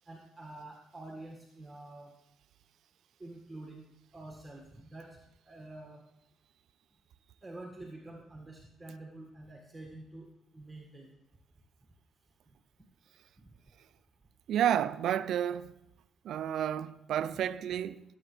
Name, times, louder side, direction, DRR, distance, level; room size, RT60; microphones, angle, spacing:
voice 1, 0.1-2.1 3.2-3.8 4.1-5.2 5.5-6.0 7.4-10.3 10.5-11.1, right 2 dB, 15° right, 1.8 m, -47 dB
voice 2, 14.5-15.7 16.2-18.0, right 10 dB, 75° right, 0.4 m, -31 dB
17.0 x 8.2 x 3.3 m
cardioid pair, 90°, 0 cm